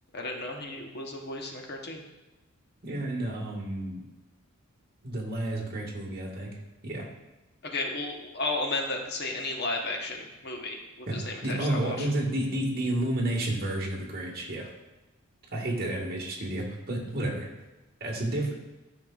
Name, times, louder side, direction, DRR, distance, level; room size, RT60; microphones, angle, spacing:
voice 1, 0.1-2.0 7.6-12.1, left 2 dB, 50° left, 2 dB, 0.9 m, -33 dB
voice 2, 2.8-4.0 5.0-6.5 6.8-7.1 11.1-11.2 11.4-14.7 15.5-17.5 18.0-18.5, right 1 dB, 45° right, -1 dB, 1.5 m, -31 dB
12.0 x 5.6 x 2.3 m, 1.1 s
head